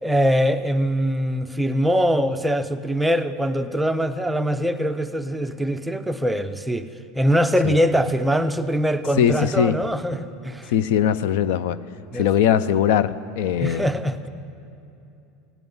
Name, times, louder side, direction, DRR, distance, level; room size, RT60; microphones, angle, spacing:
voice 1, 0.0-6.9 7.2-10.7 12.1-12.3 13.6-14.3, equal, 5° right, 8 dB, 0.4 m, -22 dB
voice 2, 9.2-9.8 10.7-11.8 12.1-13.8, left 9 dB, 70° left, 16 dB, 0.5 m, -20 dB
16.5 x 9.1 x 9.6 m, 2.7 s
supercardioid pair, 165°, 0 cm